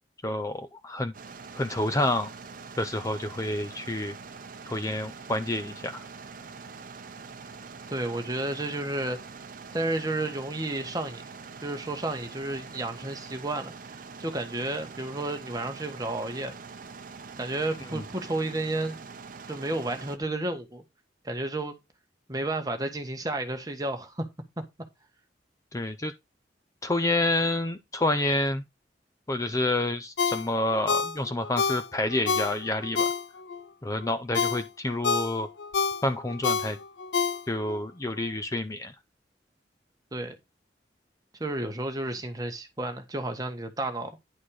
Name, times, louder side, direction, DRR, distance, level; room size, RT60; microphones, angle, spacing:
voice 1, 0.2-1.1 1.5-2.3 2.8-4.1 4.7-6.0 17.9-18.0 25.7-26.1 26.8-28.6 29.3-33.1 33.8-35.5 36.0-36.8 37.5-38.9, left 2 dB, 20° left, 0.5 m, -28 dB
sound 1, 1.1-20.2, right 5 dB, 50° right, 0.8 m, -44 dB
voice 2, 7.9-9.2 9.7-11.3 11.6-13.7 14.2-16.5 17.4-19.0 19.5-20.8 21.2-21.7 22.3-24.2 24.6-24.7 40.1-40.3 41.4-44.2, right 2 dB, 20° right, 1.5 m, -31 dB
Ringtone, 30.2-33.6 34.0-37.8 38.2-38.3, left 5 dB, 75° left, 0.6 m, -28 dB
10.0 x 4.3 x 4.8 m
head